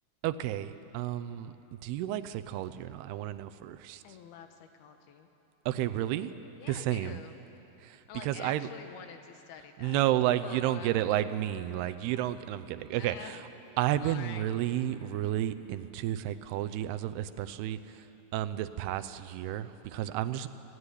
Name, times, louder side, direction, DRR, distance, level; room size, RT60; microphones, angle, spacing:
voice 1, 0.2-1.5 1.8-4.0 5.7-6.3 6.7-7.2 7.8-8.7 9.8-13.4 13.8-18.0 18.3-20.5, right 13 dB, 85° right, 11 dB, 2.8 m, -31 dB
voice 2, 4.0-5.3 6.6-7.4 8.1-11.0 13.0-13.5 14.0-14.4, left 7 dB, 75° left, 7 dB, 3.2 m, -47 dB
sound 1, 9.9-15.7, equal, 20° left, 7.4 m, -59 dB
26.5 x 16.0 x 9.9 m, 2.9 s
omnidirectional pair, 4.5 m